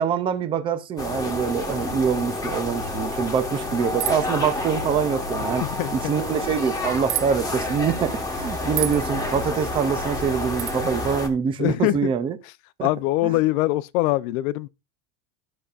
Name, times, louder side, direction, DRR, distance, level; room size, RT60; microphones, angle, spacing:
voice 1, 0.0-5.6 5.9-12.4 12.8-12.9 13.2-13.3, right 7 dB, 15° right, 0.3 m, -25 dB
sound 1, 1.0-11.3, left 2 dB, 10° left, 1.3 m, -29 dB
sound 2, 4.0-4.3 7.1-7.3 8.8-9.0 10.6-10.8, right 17 dB, 55° right, 0.8 m, -27 dB
voice 2, 5.6-6.1 11.6-12.1 12.4-12.5 12.8-14.7, left 17 dB, 70° left, 0.7 m, -23 dB
12.5 x 6.7 x 2.4 m
supercardioid pair, 150°, 43 cm